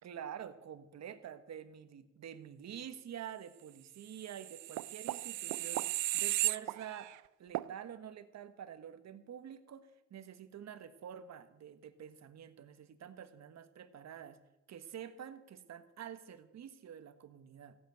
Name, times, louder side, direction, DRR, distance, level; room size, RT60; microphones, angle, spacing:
voice 1, 0.0-7.1 7.4-14.4 14.7-17.8, right 9 dB, 60° right, 11 dB, 1.4 m, -48 dB
sound 1, 4.2-7.2 7.5-7.7, right 17 dB, 80° right, 0.5 m, -35 dB
15.5 x 8.6 x 9.1 m, 0.94 s
cardioid pair, 90°, 30 cm